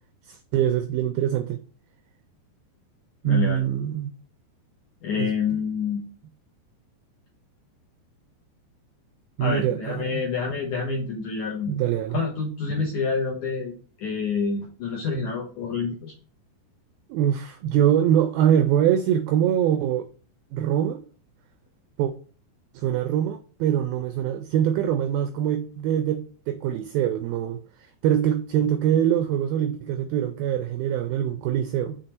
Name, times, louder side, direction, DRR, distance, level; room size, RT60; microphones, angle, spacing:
voice 1, 0.3-1.6 3.2-4.1 5.1-5.3 9.4-10.2 11.7-12.2 17.1-20.1 20.5-21.0 22.0-22.1 22.7-27.6 28.0-32.0, right 10 dB, 85° right, 2.1 m, -23 dB
voice 2, 3.2-3.6 5.0-6.1 9.4-11.7 12.1-13.7 14.0-16.2, left 5 dB, 70° left, 1.8 m, -28 dB
6.5 x 4.0 x 4.3 m
omnidirectional pair, 4.8 m